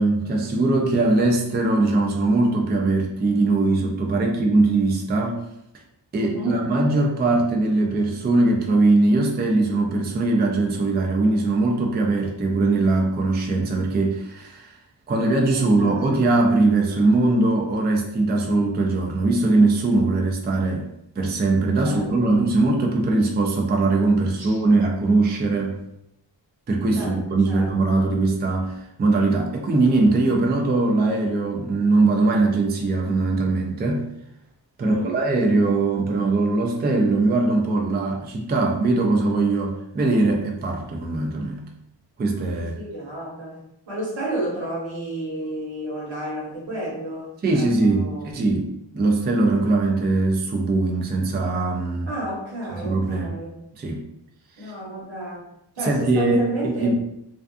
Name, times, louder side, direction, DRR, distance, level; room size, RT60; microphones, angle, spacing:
voice 1, 0.0-5.4 6.1-14.7 15.1-20.9 21.2-25.8 26.7-34.1 34.8-41.6 42.2-42.7 47.4-48.7 48.9-52.1 52.8-53.3 53.8-54.0 54.6-54.7 55.8-56.9, right 2 dB, 25° right, 1 dB, 0.4 m, -21 dB
voice 2, 6.2-6.5 15.6-16.2 21.8-22.3 24.5-24.6 27.0-27.2 27.5-27.9 34.8-35.2 42.5-43.6 43.9-48.3 52.1-53.5 54.6-55.5 55.8-56.9, right 1 dB, 75° right, -4 dB, 1.2 m, -32 dB
2.4 x 2.4 x 2.3 m, 0.79 s
cardioid pair, 75°, 46 cm